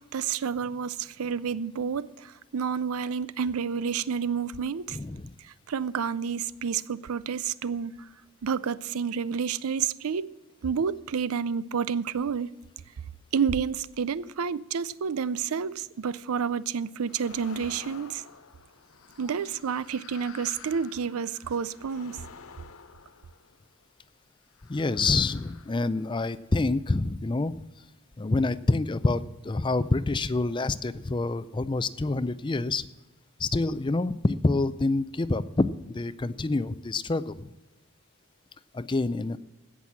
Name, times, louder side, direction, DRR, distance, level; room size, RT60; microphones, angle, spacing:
voice 1, 0.0-5.0 5.7-7.9 8.4-10.3 10.6-12.5 13.3-18.2 19.2-22.2, right 6 dB, 85° right, 0.5 m, -29 dB
voice 2, 4.9-5.3 24.7-27.5 28.2-32.9 33.4-37.5 38.7-39.4, left 3 dB, 20° left, 0.4 m, -27 dB
sound 1, 17.1-23.8 24.5-26.4, left 6 dB, 75° left, 0.8 m, -50 dB
16.5 x 6.2 x 7.2 m
head